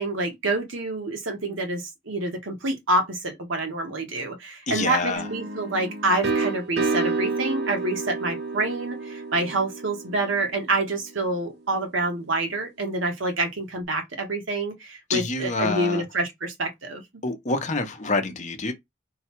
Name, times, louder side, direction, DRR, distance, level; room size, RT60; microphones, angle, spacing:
voice 1, 0.0-17.0, right 2 dB, 70° right, 1.2 m, -27 dB
voice 2, 4.7-5.3 15.1-16.0 17.2-18.7, left 3 dB, 35° left, 0.8 m, -27 dB
sound 1, 5.2-10.8, right 3 dB, 55° right, 0.7 m, -30 dB
3.9 x 2.3 x 4.4 m
head